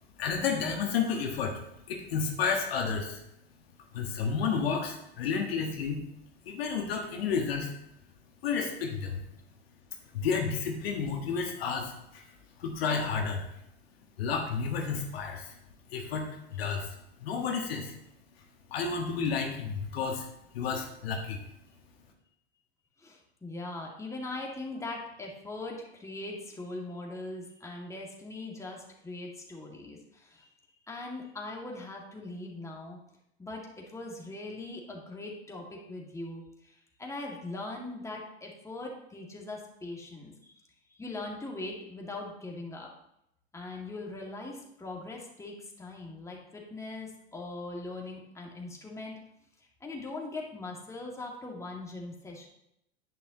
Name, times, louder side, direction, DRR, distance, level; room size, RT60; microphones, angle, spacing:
voice 1, 0.2-1.6 1.9-3.2 3.9-6.0 6.4-7.7 8.4-9.2 10.1-12.2 12.6-13.4 14.2-15.5 15.9-16.9 17.2-17.9 18.7-20.3 20.5-21.4, left 5 dB, 65° left, 2 dB, 1.6 m, -31 dB
voice 2, 23.0-33.0 33.4-40.6 40.9-42.9 43.5-49.1 49.8-52.5, left 2 dB, 10° left, -1 dB, 2.2 m, -41 dB
10.0 x 9.2 x 3.0 m, 0.78 s
figure-of-eight pair, 85°, 33 cm